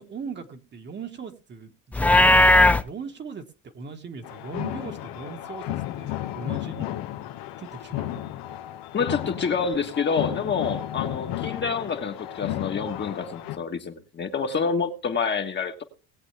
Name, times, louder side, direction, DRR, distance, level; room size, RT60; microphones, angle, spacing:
voice 1, 0.0-3.4 3.7-5.6 6.0-7.0 7.6-8.2, right 5 dB, 30° right, 5 dB, 1.5 m, -39 dB
Livestock farm animals working animals, 1.9-2.8, left 1 dB, 5° left, 0.5 m, -16 dB
sound 1, 4.2-13.6, left 13 dB, 80° left, 1.4 m, -33 dB
voice 2, 8.9-15.8, left 5 dB, 30° left, 4 dB, 1.5 m, -27 dB
19.5 x 8.1 x 3.4 m, 0.33 s
cardioid pair, 125°, 35 cm